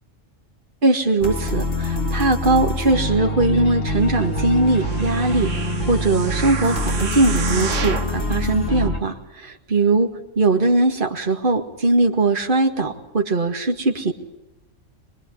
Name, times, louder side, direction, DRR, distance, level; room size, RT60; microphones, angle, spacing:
voice 1, 0.8-10.1 10.4-14.1, right 2 dB, 40° right, 2 dB, 2.2 m, -20 dB
sound 1, 1.2-9.0, left 1 dB, 80° left, 3.9 m, -25 dB
sound 2, 4.6-8.2 8.8-8.9, right 5 dB, 70° right, 1.8 m, -31 dB
25.0 x 21.5 x 9.9 m, 0.91 s
omnidirectional pair, 1.3 m